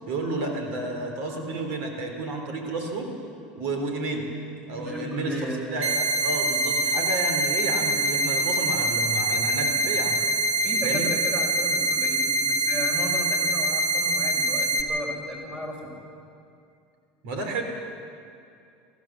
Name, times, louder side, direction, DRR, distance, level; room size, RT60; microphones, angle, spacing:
voice 1, 0.0-3.2 3.6-4.3 4.7-5.4 5.7-10.2 10.8-11.1 17.2-17.6, right 2 dB, 65° right, 3 dB, 3.8 m, -31 dB
voice 2, 4.8-5.9 10.6-16.0, equal, 20° right, -1 dB, 6.1 m, -35 dB
sound 1, 5.8-14.8, right 1 dB, 40° right, 1.9 m, -24 dB
23.0 x 15.5 x 7.6 m, 2.5 s
supercardioid pair, 115°, 5 cm